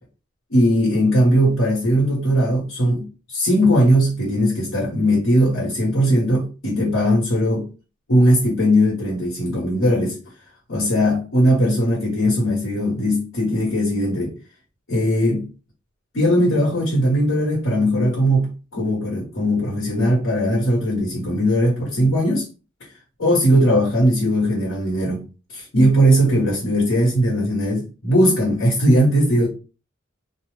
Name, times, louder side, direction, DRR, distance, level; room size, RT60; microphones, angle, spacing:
voice 1, 0.5-7.7 8.1-10.2 10.7-14.3 14.9-15.5 16.1-22.5 23.2-25.2 25.5-29.5, equal, 75° left, 1.2 m, -19 dB
2.6 x 2.0 x 3.1 m
head